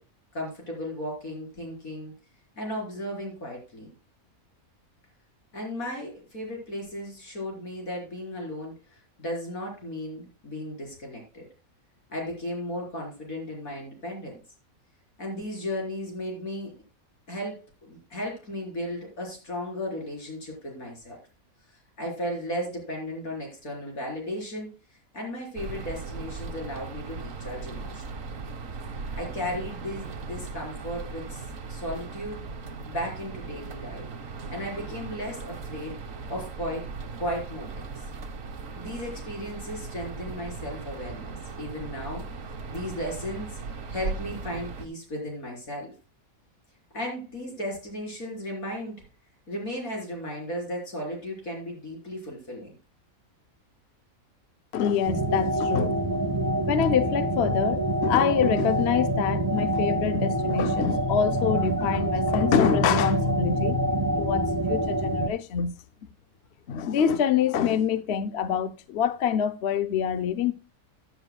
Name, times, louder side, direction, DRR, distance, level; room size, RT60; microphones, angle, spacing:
voice 1, 0.3-2.1 2.6-3.9 5.5-11.5 12.1-14.4 15.2-16.7 17.3-21.2 22.0-24.7 25.1-28.0 29.1-31.4 31.7-32.4 32.9-34.1 34.5-36.0 36.3-36.9 37.2-37.9 38.8-43.6 43.9-45.9 46.9-49.0 49.5-52.7, equal, 75° left, 4.7 m, -35 dB
sound 1, 25.6-44.9, right 4 dB, 65° right, 1.5 m, -38 dB
voice 2, 54.7-56.0 56.7-63.8 64.2-65.8 66.7-70.5, left 8 dB, 60° left, 0.8 m, -25 dB
sound 2, 55.0-65.3, right 1 dB, 15° right, 0.9 m, -26 dB
14.5 x 10.0 x 2.2 m
omnidirectional pair, 1.5 m